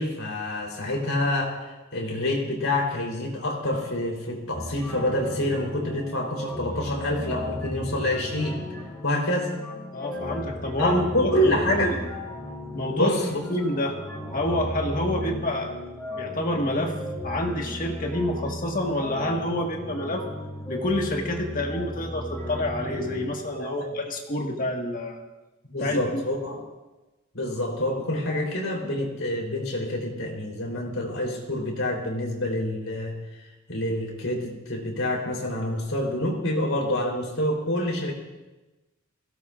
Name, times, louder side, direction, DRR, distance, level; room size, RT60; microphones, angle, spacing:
voice 1, 0.0-8.6 9.0-9.5 10.8-11.9 13.0-13.4 23.6-23.7 25.6-26.6 27.3-33.2 33.7-38.1, left 1 dB, 70° left, 0 dB, 3.7 m, -27 dB
sound 1, 4.5-23.3, left 1 dB, 10° left, 3.5 m, -35 dB
voice 2, 9.9-12.0 12.7-13.1 13.5-13.9 14.3-15.8 16.1-16.9 17.2-20.3 20.7-25.2 25.8-26.2, left 1 dB, 40° left, 1 dB, 1.6 m, -28 dB
23.0 x 17.0 x 2.5 m, 1.1 s
head